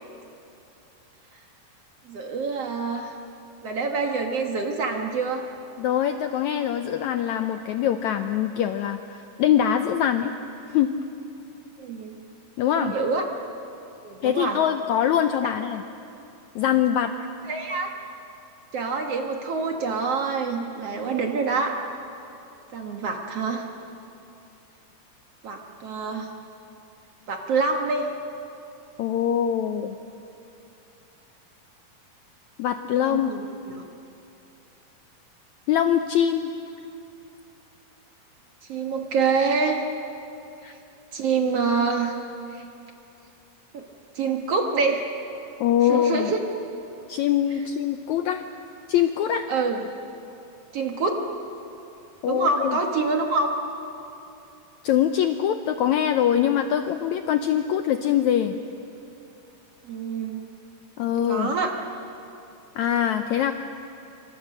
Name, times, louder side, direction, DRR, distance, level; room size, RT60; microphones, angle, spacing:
voice 1, 2.1-3.1 3.6-5.5 11.8-12.2 12.8-13.2 14.0-14.6 15.4-15.5 17.5-17.9 18.7-21.8 22.7-23.7 25.4-26.3 27.3-28.1 33.0-33.8 38.7-39.8 41.1-42.1 42.5-42.6 43.7-43.8 44.2-45.0 45.8-46.4 49.5-49.8 50.7-51.2 52.3-53.5 59.8-60.4 61.3-61.8, right 4 dB, 55° right, 3 dB, 1.9 m, -26 dB
voice 2, 5.8-10.3 10.7-10.9 12.6-12.9 14.2-15.8 16.5-17.1 29.0-29.9 32.6-33.3 35.7-36.5 40.6-40.7 45.6-46.3 47.1-48.4 48.9-49.5 52.2-52.8 54.8-58.6 61.0-61.5 62.8-63.5, left 10 dB, 85° left, 8 dB, 1.7 m, -23 dB
27.0 x 25.0 x 6.5 m, 2.8 s
omnidirectional pair, 4.1 m